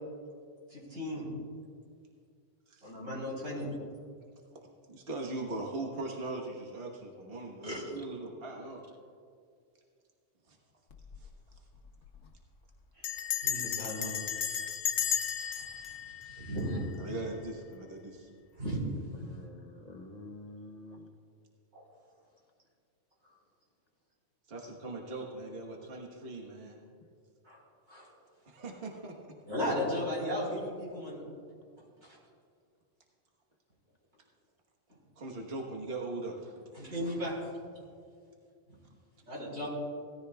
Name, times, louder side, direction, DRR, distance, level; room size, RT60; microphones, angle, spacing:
voice 1, 0.7-1.3 2.8-3.7 7.6-7.8 13.4-14.1 15.5-15.6 16.3-16.9 18.6-18.9 21.7-21.8 27.5-27.6 27.9-28.1 29.5-31.2 36.8-37.3 39.3-39.7, equal, 90° right, -4 dB, 4.2 m, -35 dB
voice 2, 4.9-8.8 10.5-10.6 11.2-11.3 16.4-16.7 17.0-18.3 24.5-26.8 28.4-29.1 35.2-36.6, right 2 dB, 55° right, 0 dB, 1.4 m, -40 dB
Bell, 10.9-11.3 11.5-11.6 11.9-12.2 13.0-17.1, left 8 dB, 75° left, 1.1 m, -34 dB
voice 3, 19.1-21.1 29.9-30.0, left 2 dB, 40° left, 2 dB, 0.8 m, -48 dB
18.0 x 13.5 x 2.3 m, 2.2 s
omnidirectional pair, 1.2 m